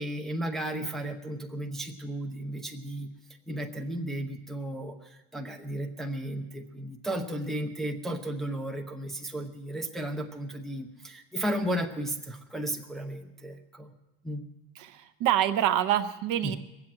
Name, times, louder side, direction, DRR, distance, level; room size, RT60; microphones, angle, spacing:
voice 1, 0.0-3.1 3.5-13.9 14.2-14.4 16.4-16.6, right 1 dB, ahead, 2 dB, 0.7 m, -34 dB
voice 2, 14.8-16.6, right 11 dB, 45° right, 11 dB, 0.8 m, -26 dB
21.0 x 7.8 x 8.7 m, 0.96 s
supercardioid pair, 145°, 45 cm